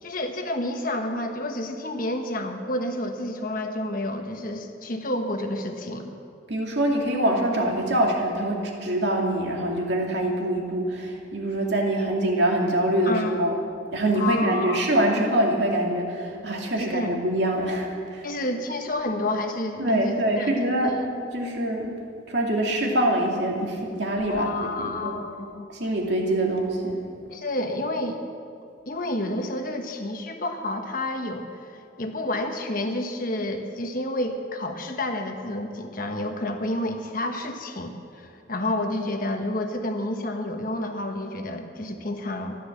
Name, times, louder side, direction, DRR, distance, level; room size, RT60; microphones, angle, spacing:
voice 1, 0.0-6.1 13.0-13.4 14.1-14.8 16.8-17.1 18.2-20.5 20.8-21.1 24.3-25.7 27.3-28.2 28.9-42.6, left 1 dB, 45° left, 4 dB, 1.3 m, -30 dB
voice 2, 6.5-13.5 13.9-18.2 19.8-21.0 21.3-21.9 22.3-25.1 25.7-27.0, right 1 dB, 60° right, 0 dB, 2.5 m, -24 dB
13.5 x 12.5 x 7.3 m, 2.3 s
head